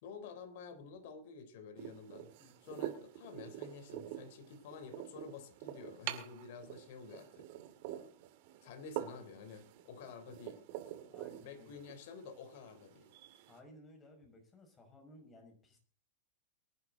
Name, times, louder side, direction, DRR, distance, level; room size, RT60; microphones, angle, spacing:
voice 1, 0.0-2.3 2.6-7.5 8.6-10.6 11.4-13.1, left 5 dB, 60° left, 8 dB, 3.5 m, -50 dB
sound 1, 1.8-13.6, right 13 dB, 55° right, 2.2 m, -47 dB
voice 2, 11.1-11.8 13.5-15.8, left 1 dB, 20° left, 4 dB, 5.7 m, -58 dB
23.5 x 10.5 x 3.9 m, 0.38 s
supercardioid pair, 145°, 0 cm